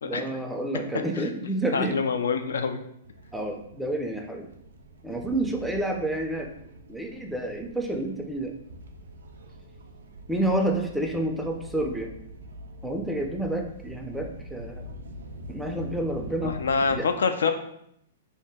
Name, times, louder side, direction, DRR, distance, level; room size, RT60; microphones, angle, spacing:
voice 1, 0.0-2.0 3.3-4.5 5.0-6.5 6.9-8.5 10.3-12.1 12.8-14.9 15.5-17.1, right 1 dB, 5° right, 2 dB, 0.4 m, -29 dB
voice 2, 1.7-2.8 16.4-17.5, left 5 dB, 80° left, 7 dB, 0.3 m, -25 dB
sound 1, 3.0-17.0, equal, 80° right, 0.3 m, -44 dB
2.7 x 2.1 x 3.4 m, 0.74 s
hypercardioid pair, 115°, 0 cm